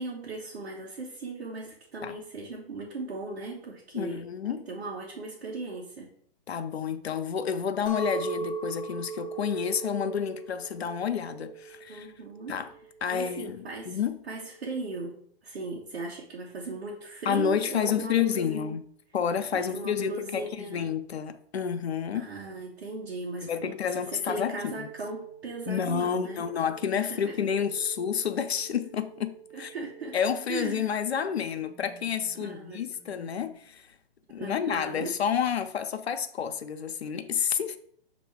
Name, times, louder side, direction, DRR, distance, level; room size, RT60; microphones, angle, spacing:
voice 1, 0.0-6.1 11.9-12.5 13.1-14.0 14.3-15.1 15.4-18.7 19.5-20.9 22.1-26.4 26.9-27.5 29.5-30.1 30.5-30.9 32.4-32.8 34.4-35.1, right 3 dB, 75° right, 1.4 m, -37 dB
voice 2, 3.9-4.6 6.5-12.1 12.5-12.7 13.0-14.2 17.3-18.8 19.1-22.3 23.4-24.9 25.7-29.7 30.1-33.9 34.3-37.8, left 8 dB, 85° left, 0.8 m, -30 dB
Chink clink, 7.9-13.0, right 4 dB, 15° left, 1.0 m, -37 dB
sound 1, 22.3-33.5, right 9 dB, 20° right, 1.8 m, -51 dB
7.1 x 3.1 x 4.6 m
hypercardioid pair, 145°, 31 cm